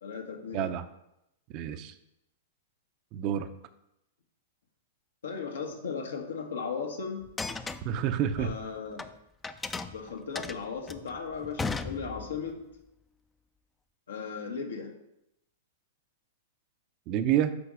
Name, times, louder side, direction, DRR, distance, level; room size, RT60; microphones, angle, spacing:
voice 1, 0.0-0.7 5.2-7.2 8.4-9.0 9.9-12.6 14.1-14.9, left 5 dB, 85° left, 3 dB, 1.3 m, -36 dB
voice 2, 0.5-0.8 1.5-1.9 3.1-3.5 7.8-8.5 17.1-17.6, right 10 dB, 45° right, 11 dB, 0.5 m, -28 dB
sound 1, 7.2-9.1 9.4-12.5, left 4 dB, 10° left, 0.4 m, -36 dB
6.9 x 4.1 x 4.9 m, 0.84 s
hypercardioid pair, 120°, 0 cm